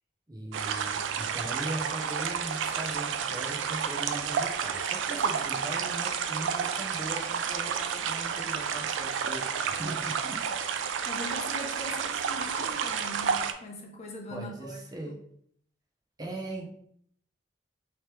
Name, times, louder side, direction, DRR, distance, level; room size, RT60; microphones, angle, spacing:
voice 1, 0.3-10.4 14.3-15.2 16.2-16.7, right 1 dB, 20° right, 0 dB, 0.7 m, -39 dB
sound 1, 0.5-13.5, right 7 dB, 90° right, 0.3 m, -31 dB
voice 2, 11.0-14.8, left 1 dB, 35° left, 0 dB, 0.7 m, -41 dB
3.2 x 3.0 x 3.2 m, 0.67 s
head